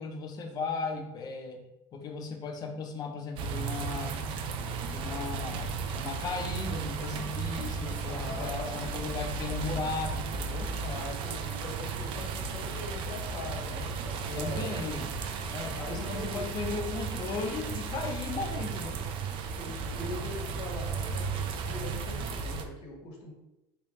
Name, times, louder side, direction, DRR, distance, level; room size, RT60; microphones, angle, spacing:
voice 1, 0.0-4.4 4.9-10.7 14.3-15.1 15.5-19.0, left 4 dB, 40° left, 4 dB, 0.6 m, -36 dB
sound 1, 3.3-22.6, right 5 dB, 55° right, 0.4 m, -35 dB
voice 2, 8.1-8.8 10.8-14.7 15.7-16.4 19.6-23.3, left 2 dB, 65° left, -1 dB, 1.2 m, -41 dB
3.4 x 2.2 x 4.0 m, 0.93 s
cardioid pair, 125°, 11 cm